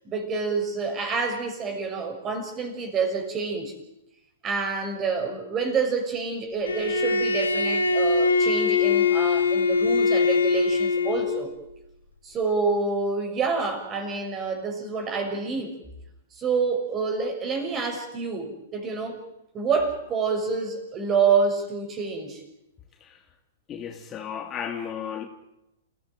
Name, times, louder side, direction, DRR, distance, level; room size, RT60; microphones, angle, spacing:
voice 1, 0.0-3.7 4.4-11.5 12.2-15.7 16.4-19.2 19.5-22.4, right 4 dB, 25° right, 5 dB, 6.4 m, -27 dB
Bowed string instrument, 6.7-11.5, left 4 dB, 85° left, 3.4 m, -22 dB
voice 2, 23.7-25.2, left 8 dB, 25° left, 4 dB, 2.7 m, -34 dB
28.5 x 16.0 x 9.1 m, 0.88 s
hypercardioid pair, 115°, 0 cm